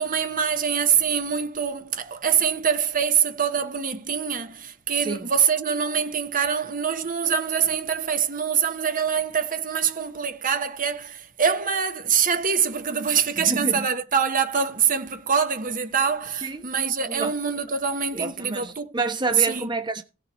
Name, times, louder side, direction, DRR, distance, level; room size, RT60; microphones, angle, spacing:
voice 1, 0.0-18.9 19.4-19.7, right 7 dB, 40° right, 1.2 m, -24 dB
voice 2, 13.4-13.9 16.4-16.7 17.1-17.3 18.1-20.0, right 3 dB, 20° right, 1.0 m, -29 dB
17.0 x 7.1 x 3.1 m
head